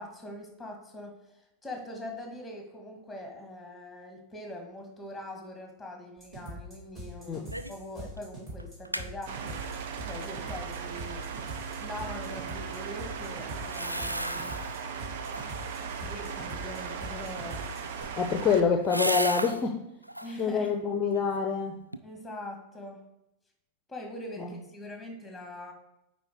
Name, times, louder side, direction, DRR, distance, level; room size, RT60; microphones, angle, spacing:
voice 1, 0.0-9.6 10.0-11.3 11.8-14.6 15.8-17.6 20.2-20.7 22.0-23.0 23.9-25.7, left 1 dB, 5° left, 2 dB, 1.8 m, -42 dB
sound 1, 6.2-18.0, equal, 25° right, 2.7 m, -43 dB
sound 2, 7.5-7.8 8.2-8.3 8.6-9.1 13.6-14.8 15.2-15.7 17.7-19.6 20.0-20.5 20.9-21.6 21.9-22.0, equal, 90° right, 0.3 m, -35 dB
sound 3, 9.3-18.6, right 6 dB, 55° right, 0.7 m, -38 dB
voice 2, 18.2-19.8 20.4-21.7 24.4-24.5, left 6 dB, 25° left, 3 dB, 0.7 m, -26 dB
9.0 x 4.5 x 3.5 m, 0.87 s
figure-of-eight pair, 90°, 0 cm